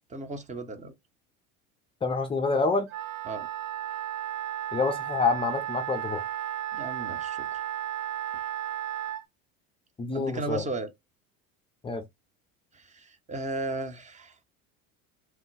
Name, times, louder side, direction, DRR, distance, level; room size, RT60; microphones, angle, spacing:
voice 1, 0.1-0.9 3.3-3.5 6.7-7.6 10.1-10.9 12.7-14.4, right 2 dB, 15° right, 0.8 m, -35 dB
voice 2, 2.0-2.9 4.7-6.2 10.0-10.6 11.8-12.0, left 4 dB, 15° left, 0.4 m, -27 dB
Wind instrument woodwind instrument, 2.9-9.3, right 12 dB, 50° right, 0.8 m, -34 dB
3.1 x 2.1 x 3.2 m
hypercardioid pair, 85°, 42 cm